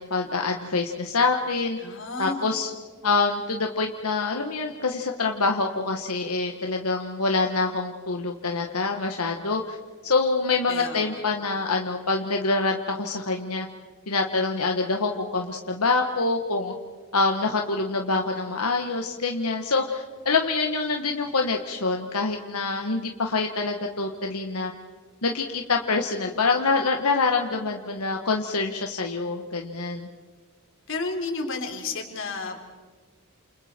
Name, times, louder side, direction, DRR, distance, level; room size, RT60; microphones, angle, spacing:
voice 1, 0.0-1.8 2.2-2.7 3.0-9.8 10.0-13.7 14.1-16.7 17.1-24.7 25.2-30.1, left 3 dB, 90° left, 3 dB, 1.5 m, -25 dB
voice 2, 1.8-2.6 10.7-11.2 30.9-32.6, left 3 dB, 60° left, 3 dB, 3.6 m, -32 dB
30.0 x 28.5 x 4.5 m, 1.4 s
head